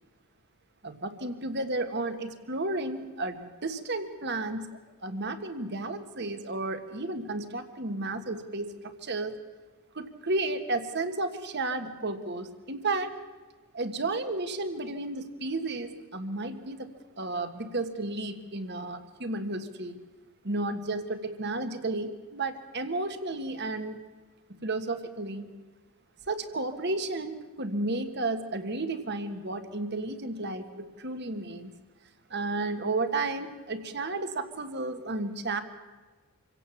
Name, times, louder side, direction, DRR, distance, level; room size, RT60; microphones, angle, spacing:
voice 1, 0.8-4.7 5.0-9.4 9.9-13.1 13.7-16.9 17.2-20.0 20.4-24.0 24.6-25.5 26.3-31.7 32.3-35.6, right 2 dB, 50° right, 9 dB, 1.6 m, -32 dB
26.5 x 17.0 x 7.2 m, 1.3 s
head